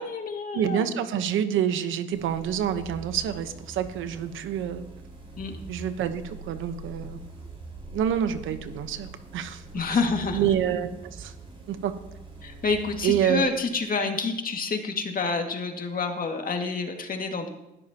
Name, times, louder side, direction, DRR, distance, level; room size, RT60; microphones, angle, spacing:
voice 1, 0.0-0.8 5.4-5.5 9.7-10.4 12.4-17.5, left 4 dB, 45° left, 3 dB, 2.1 m, -28 dB
voice 2, 0.5-4.8 5.7-7.2 7.9-9.6 9.9-10.0 10.3-11.3 11.7-11.9 13.0-13.5, right 9 dB, 85° right, 9 dB, 1.1 m, -27 dB
sound 1, 2.1-14.0, right 3 dB, 25° right, 5.8 m, -44 dB
20.0 x 12.5 x 2.9 m, 0.91 s
cardioid pair, 90°, 20 cm